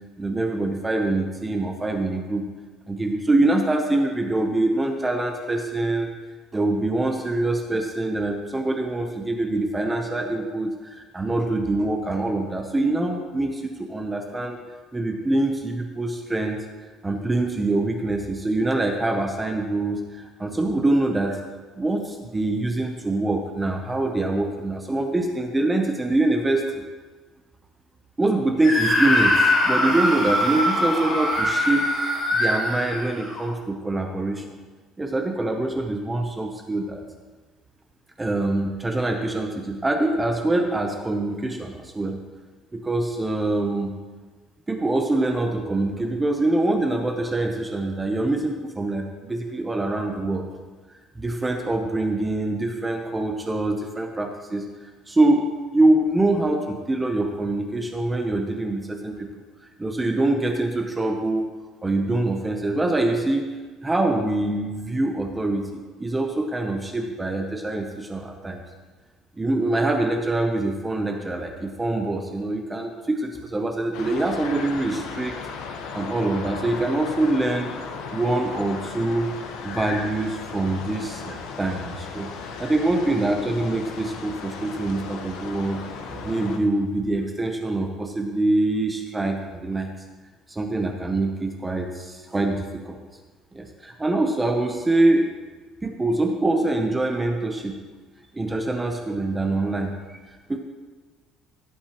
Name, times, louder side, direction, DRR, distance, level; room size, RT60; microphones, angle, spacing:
voice 1, 0.2-2.4 2.9-6.1 6.5-14.6 14.9-16.6 17.0-21.4 21.8-26.6 28.2-31.9 32.3-34.4 35.0-37.0 38.2-42.2 42.7-43.9 44.7-50.5 51.2-54.6 55.1-55.4 55.7-59.3 59.8-61.5 61.8-63.5 63.8-68.6 69.4-75.4 75.9-77.7 78.1-79.3 79.6-85.8 86.1-89.9 90.5-93.0 93.5-95.3 95.8-97.7 98.3-100.6, right 2 dB, 10° right, 3 dB, 0.7 m, -24 dB
Screaming, 28.6-33.5, left 1 dB, 30° left, 3.0 m, -22 dB
sound 1, 73.9-86.6, left 5 dB, 80° left, 1.1 m, -36 dB
16.0 x 8.8 x 2.9 m, 1.3 s
cardioid pair, 170°, 0 cm